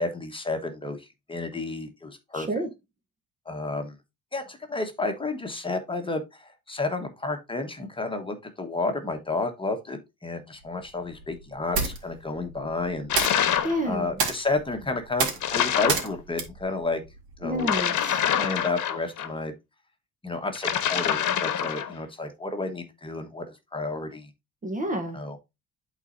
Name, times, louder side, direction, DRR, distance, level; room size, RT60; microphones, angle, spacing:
voice 1, 0.0-2.5 3.5-3.9 4.3-13.1 13.8-17.0 17.4-17.7 18.4-19.5 20.2-23.5 23.7-24.3 25.1-25.4, left 3 dB, 15° left, 1.2 m, -31 dB
voice 2, 2.3-2.7 13.6-14.1 17.4-18.2 24.6-25.2, equal, 20° right, 0.9 m, -29 dB
sound 1, 10.6-17.8, right 5 dB, 85° right, 2.3 m, -32 dB
sound 2, 13.1-13.8 15.4-16.1 17.6-19.3 20.6-21.9, left 9 dB, 55° left, 1.1 m, -26 dB
12.0 x 4.1 x 2.6 m
cardioid pair, 140°, 35 cm